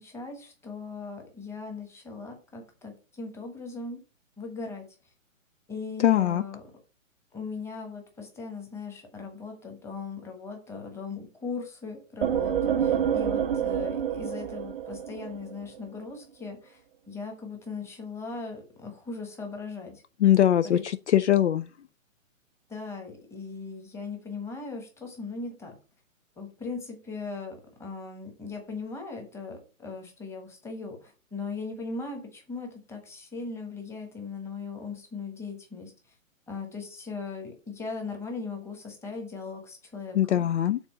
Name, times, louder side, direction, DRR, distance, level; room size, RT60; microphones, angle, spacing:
voice 1, 0.0-4.0 4.4-4.8 5.7-6.6 7.3-16.8 17.1-20.0 20.6-20.8 22.7-25.7 26.4-35.9 36.5-40.4, left 4 dB, 5° left, 1.2 m, -39 dB
voice 2, 6.0-6.4 20.2-21.7 40.1-40.8, left 11 dB, 60° left, 0.5 m, -22 dB
sound 1, 12.2-15.8, right 9 dB, 45° right, 0.5 m, -28 dB
7.1 x 3.9 x 5.4 m
hypercardioid pair, 140°, 41 cm